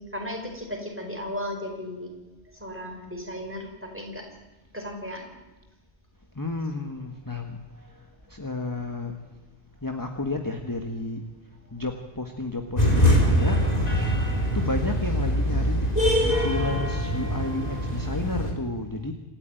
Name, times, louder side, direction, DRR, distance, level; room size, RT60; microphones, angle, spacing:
voice 1, 0.0-2.1 2.5-4.3 4.7-5.3 7.7-7.9, left 1 dB, 10° right, 1 dB, 5.0 m, -35 dB
voice 2, 6.4-7.6 8.3-9.1 9.8-11.2 11.7-13.6 14.5-15.9 16.2-19.1, left 2 dB, 20° left, 4 dB, 1.5 m, -31 dB
sound 1, 12.8-18.5, equal, 40° left, 4.2 m, -23 dB
27.5 x 14.0 x 9.2 m, 1.1 s
omnidirectional pair, 1.0 m